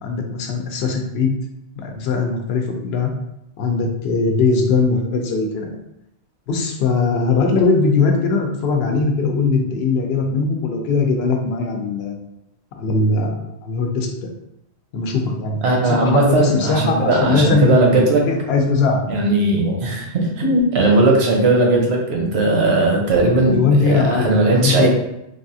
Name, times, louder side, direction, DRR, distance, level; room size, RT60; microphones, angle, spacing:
voice 1, 0.0-1.3 1.8-3.1 3.6-5.7 6.5-12.1 12.8-14.3 14.9-17.7 18.3-19.0 19.7-20.0 23.5-24.9, left 4 dB, 75° left, 2 dB, 0.8 m, -20 dB
voice 2, 15.6-18.2 19.1-24.9, right 2 dB, 75° right, -1 dB, 1.0 m, -17 dB
3.3 x 2.4 x 2.6 m, 0.83 s
omnidirectional pair, 1.1 m